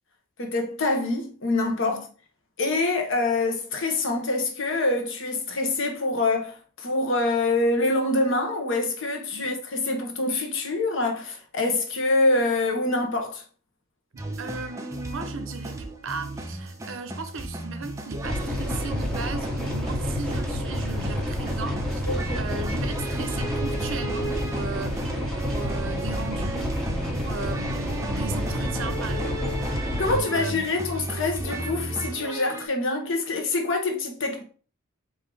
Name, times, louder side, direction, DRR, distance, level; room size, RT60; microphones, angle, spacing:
voice 1, 0.4-2.0 2.6-13.4 22.1-22.4 30.0-34.4, left 2 dB, 60° left, 0.9 m, -25 dB
sound 1, 14.2-32.7, right 2 dB, 15° right, 0.5 m, -34 dB
voice 2, 14.4-25.0 25.4-26.7 27.0-30.7, right 4 dB, 60° right, 0.6 m, -37 dB
sound 2, 18.2-30.2, left 1 dB, 5° left, 0.9 m, -29 dB
4.6 x 2.7 x 3.8 m
head